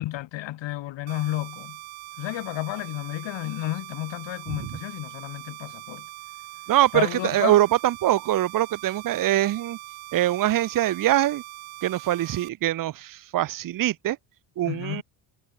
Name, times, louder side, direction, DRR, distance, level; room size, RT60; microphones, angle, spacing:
voice 1, 0.0-1.8 2.2-6.1 6.9-7.6 14.7-15.0, left 16 dB, 70° left, 3.3 m, -31 dB
sound 1, 1.1-12.5, right 18 dB, 75° right, 4.0 m, -42 dB
voice 2, 6.7-9.8 10.1-11.4 11.8-14.2 14.6-15.0, right 13 dB, 45° right, 1.0 m, -23 dB
cardioid pair, 140°, 46 cm